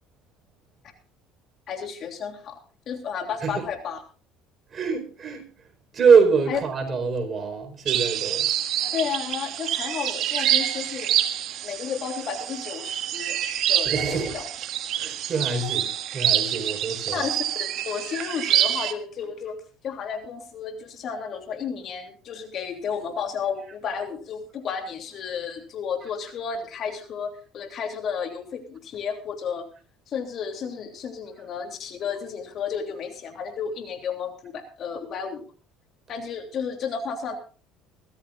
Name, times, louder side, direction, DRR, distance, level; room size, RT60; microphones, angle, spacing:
voice 1, 1.7-2.6 2.9-4.0 6.5-6.6 8.9-11.1 11.6-13.4 13.7-14.4 17.1-19.6 19.8-29.6 30.1-35.4 36.1-37.4, left 6 dB, 50° left, 3.0 m, -32 dB
voice 2, 4.7-5.4 5.9-8.5 13.8-14.4 15.0-17.3, right 5 dB, 35° right, 4.6 m, -24 dB
sound 1, 7.9-18.9, right 11 dB, 60° right, 1.5 m, -26 dB
23.0 x 14.5 x 2.5 m
supercardioid pair, 110°, 0 cm